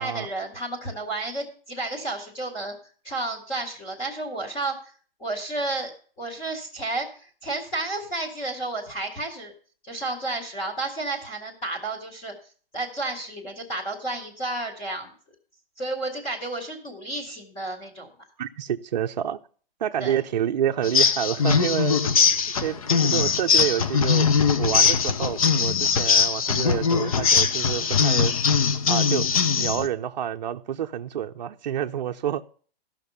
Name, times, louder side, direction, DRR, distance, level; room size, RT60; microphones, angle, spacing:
voice 1, 0.0-2.7 3.0-4.8 5.2-5.9 6.2-9.5 9.8-12.3 12.7-15.1 15.8-18.1 20.0-20.2, right 2 dB, 15° left, 2.2 m, -31 dB
voice 2, 18.4-19.4 19.8-22.0 22.6-24.3 24.6-28.3 28.9-29.3 29.6-32.4, right 10 dB, 45° right, 0.7 m, -28 dB
sound 1, 20.8-29.9, left 6 dB, 35° left, 0.6 m, -21 dB
14.5 x 6.0 x 6.8 m
hypercardioid pair, 175°, 30 cm